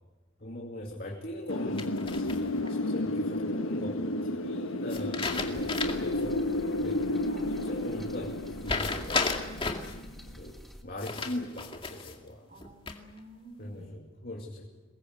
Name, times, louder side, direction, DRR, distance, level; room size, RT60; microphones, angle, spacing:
voice 1, 0.4-7.1 7.5-12.5 13.6-14.7, left 1 dB, 45° left, 0 dB, 2.7 m, -41 dB
Wind, 1.5-10.2, left 1 dB, 85° left, 1.3 m, -32 dB
sound 1, 1.8-2.7 4.9-6.2 6.6-6.7 8.6-9.9 11.0-12.2 12.6-13.2, left 4 dB, 25° left, 2.2 m, -33 dB
voice 2, 2.5-3.0 7.3-7.5 12.5-14.0, right 1 dB, 45° right, 3 dB, 4.2 m, -50 dB
sound 2, 5.3-10.8, equal, ahead, 1.6 m, -48 dB
23.5 x 21.0 x 8.0 m, 1.2 s
head